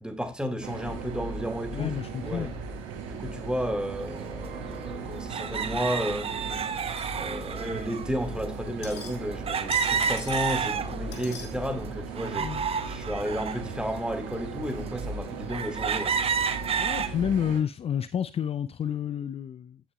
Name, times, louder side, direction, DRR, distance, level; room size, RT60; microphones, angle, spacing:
voice 1, 0.0-2.0 2.3-2.5 3.1-6.7 7.1-12.6 12.8-16.2, equal, 5° right, 2.0 m, -33 dB
sound 1, 0.6-17.6, right 4 dB, 70° right, 1.6 m, -37 dB
voice 2, 1.7-2.6 12.4-12.7 16.8-19.8, left 8 dB, 40° left, 0.5 m, -30 dB
sound 2, 4.2-4.3 5.3-8.1 9.5-11.2 11.7-13.6 14.2-14.3 15.0-15.1 15.5-17.1, right 6 dB, 40° right, 0.9 m, -30 dB
sound 3, 6.9-7.7 8.5-9.4 9.7-10.7 11.1-11.5, left 6 dB, 75° left, 1.5 m, -43 dB
15.0 x 6.3 x 2.3 m
figure-of-eight pair, 45°, 15 cm